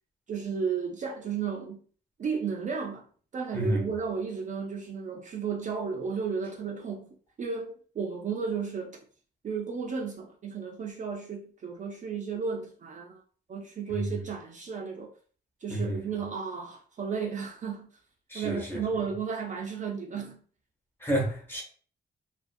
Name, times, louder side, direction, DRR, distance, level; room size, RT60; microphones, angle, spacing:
voice 1, 0.3-1.8 2.2-3.1 3.3-7.1 7.4-9.0 9.4-13.2 13.5-15.1 15.6-17.9 18.3-20.4, right 6 dB, 45° right, 0.4 m, -33 dB
voice 2, 3.5-3.9 13.9-14.0 15.7-16.0 18.3-18.8 21.0-21.6, right 1 dB, 10° left, 0.8 m, -30 dB
2.4 x 2.4 x 2.5 m
wide cardioid pair, 150°, 18 cm